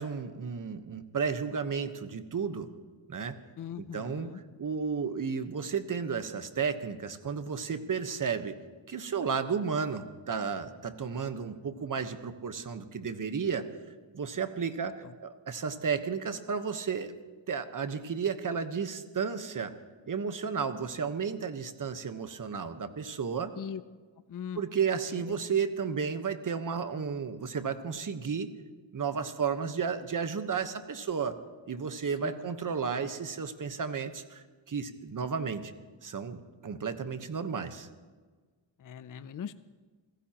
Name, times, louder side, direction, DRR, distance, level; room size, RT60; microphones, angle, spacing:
voice 1, 0.0-2.7 3.1-3.4 3.8-4.3 4.6-8.6 8.9-13.7 14.1-17.1 17.5-19.7 20.1-23.5 24.6-28.5 28.9-31.4 31.7-35.7 36.0-37.9, right 6 dB, 40° right, 9 dB, 1.2 m, -33 dB
voice 2, 3.6-4.4 15.0-15.1 23.5-23.8 24.3-24.6 25.2-25.3 32.2-32.5 38.8-39.5, left 8 dB, 40° left, 13 dB, 0.6 m, -40 dB
30.0 x 15.5 x 3.0 m, 1.4 s
wide cardioid pair, 115°, 49 cm